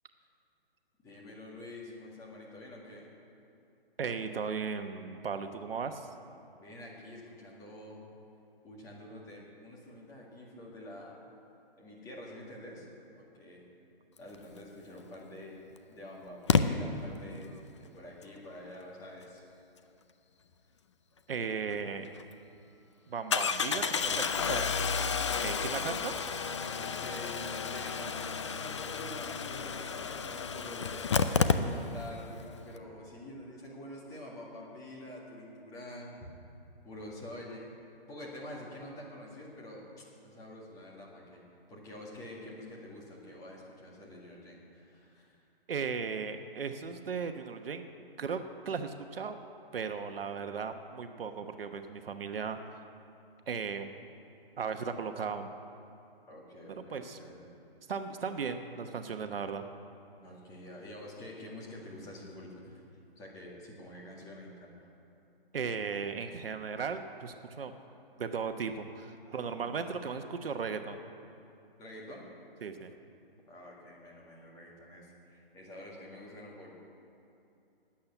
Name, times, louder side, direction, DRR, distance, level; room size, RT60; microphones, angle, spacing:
voice 1, 1.0-3.1 6.5-8.0 8.6-11.2 11.8-12.9 13.1-13.6 14.2-15.6 15.9-19.4 26.7-30.9 31.6-36.2 36.8-37.7 38.1-39.8 40.2-41.4 41.7-45.4 56.3-57.5 59.0-59.3 60.2-62.8 63.2-64.9 69.2-69.9 71.8-72.3 73.5-76.7, left 1 dB, 10° left, -3 dB, 2.0 m, -47 dB
voice 2, 4.0-6.1 21.3-22.1 23.1-24.7 25.4-26.2 45.7-47.8 48.2-49.4 49.7-52.6 53.5-53.9 54.6-55.5 56.9-57.2 57.9-59.7 65.5-67.7 68.2-71.0 72.6-72.9, right 5 dB, 70° right, 7 dB, 1.1 m, -36 dB
Engine starting, 15.0-15.1 16.5-16.6 21.7-21.8 22.1-22.2 23.3-32.1 32.4-32.5 32.7-32.8, left 5 dB, 30° left, 0.5 m, -31 dB
11.5 x 8.8 x 9.9 m, 2.8 s
hypercardioid pair, 160°, 30 cm